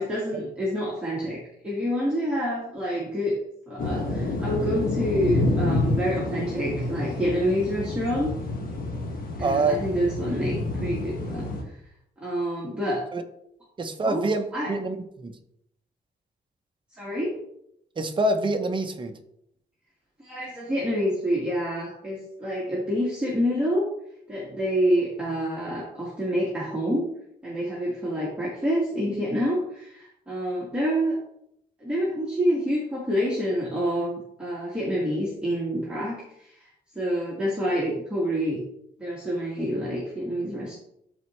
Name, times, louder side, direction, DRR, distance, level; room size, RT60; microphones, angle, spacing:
voice 1, 0.0-3.4 3.7-8.3 9.4-11.7 12.2-13.0 14.0-14.2 14.5-14.7 17.0-17.4 20.2-23.9 24.3-27.1 27.4-31.2 31.8-36.7 36.9-38.6 39.0-40.7, equal, 5° right, -6 dB, 1.7 m, -27 dB
sound 1, 3.8-11.6, left 2 dB, 55° left, 1.5 m, -28 dB
voice 2, 9.4-9.8 13.1-13.2 13.8-15.3 18.0-19.1, right 2 dB, 30° right, 6 dB, 0.7 m, -26 dB
12.5 x 4.2 x 3.1 m, 0.76 s
wide cardioid pair, 165°, 18 cm